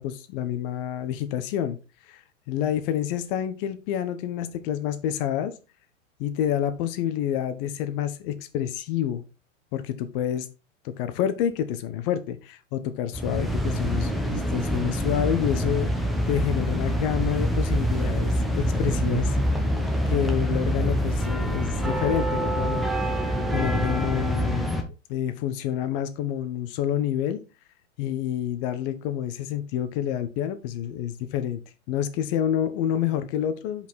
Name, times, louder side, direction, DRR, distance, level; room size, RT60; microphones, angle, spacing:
voice 1, 0.0-1.8 2.1-2.2 2.5-5.5 6.2-9.2 9.7-10.5 10.8-16.0 16.3-19.4 20.1-23.2 23.5-27.4 28.0-31.6 31.9-33.9, left 10 dB, 45° left, 11 dB, 1.1 m, -28 dB
sound 1, 13.1-24.8, equal, ahead, 1.0 m, -25 dB
5.2 x 5.2 x 4.1 m, 0.30 s
hypercardioid pair, 115°, 37 cm